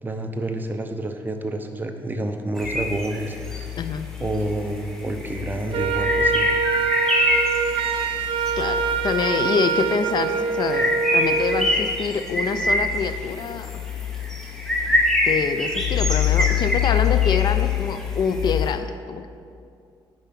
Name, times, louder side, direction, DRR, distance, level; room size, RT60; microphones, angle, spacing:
voice 1, 0.0-3.7 4.2-6.5, right 1 dB, 20° right, 5 dB, 0.7 m, -29 dB
sound 1, 2.6-18.7, left 14 dB, 90° left, 0.7 m, -29 dB
sound 2, 2.6-3.6 4.5-4.6 4.9-8.5 9.3-9.5 9.8-18.5, left 1 dB, 5° left, 1.3 m, -25 dB
Wind instrument woodwind instrument, 5.7-11.8, right 6 dB, 80° right, 0.5 m, -25 dB
voice 2, 8.6-13.7 15.2-19.3, left 6 dB, 55° left, 10 dB, 0.5 m, -26 dB
8.9 x 5.2 x 5.8 m, 2.4 s
cardioid pair, 110°, 9 cm